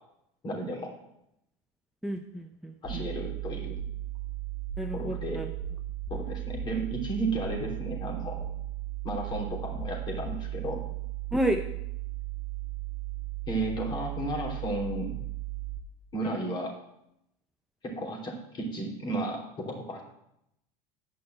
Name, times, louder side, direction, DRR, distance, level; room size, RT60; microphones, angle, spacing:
voice 1, 0.4-0.9 2.8-3.8 4.9-5.4 6.1-8.4 9.0-10.8 13.5-15.2 16.1-16.8 17.8-20.0, right 1 dB, 35° left, 0 dB, 3.3 m, -33 dB
voice 2, 2.0-3.1 4.8-5.5 11.3-11.6, right 1 dB, ahead, 4 dB, 0.6 m, -31 dB
sound 1, 2.8-15.8, right 13 dB, 90° left, 4.7 m, -36 dB
9.6 x 5.5 x 7.7 m, 0.81 s
supercardioid pair, 110°, 13 cm